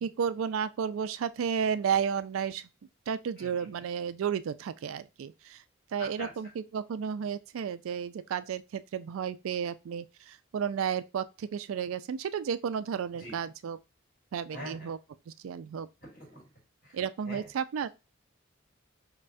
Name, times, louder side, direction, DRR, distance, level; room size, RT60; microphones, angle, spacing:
voice 1, 0.0-2.7 3.1-5.6 5.9-13.8 14.3-15.0 15.3-15.9 16.9-17.9, right 7 dB, 85° right, 0.3 m, -32 dB
voice 2, 3.4-3.9 6.0-6.3 13.2-13.4 14.5-14.9 16.0-16.5 16.8-17.0 17.3-17.5, left 1 dB, 45° left, 1.8 m, -44 dB
5.4 x 2.2 x 2.6 m
head